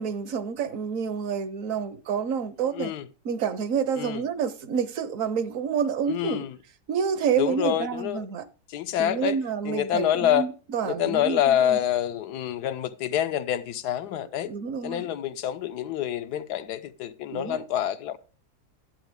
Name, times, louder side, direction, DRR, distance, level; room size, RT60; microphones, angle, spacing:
voice 1, 0.0-2.9 3.2-6.4 6.9-8.5 9.0-11.8 14.4-15.1 17.3-17.6, right 7 dB, 65° right, 1.0 m, -28 dB
voice 2, 2.7-3.1 4.0-4.2 6.1-6.5 7.4-8.3 8.7-9.4 9.6-10.5 10.8-14.5 14.8-18.2, left 11 dB, 85° left, 1.3 m, -27 dB
11.0 x 8.0 x 3.5 m
omnidirectional pair, 1.7 m